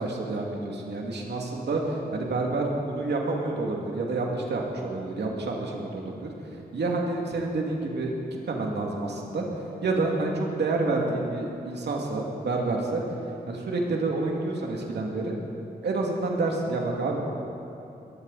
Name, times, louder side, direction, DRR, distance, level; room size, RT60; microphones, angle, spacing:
voice 1, 0.0-1.8 2.1-6.3 6.7-8.1 8.5-9.4 9.8-13.0 13.5-15.3 15.8-17.3, right 3 dB, 80° right, 0 dB, 2.4 m, -28 dB
20.5 x 14.5 x 4.2 m, 2.9 s
cardioid pair, 60°, 17 cm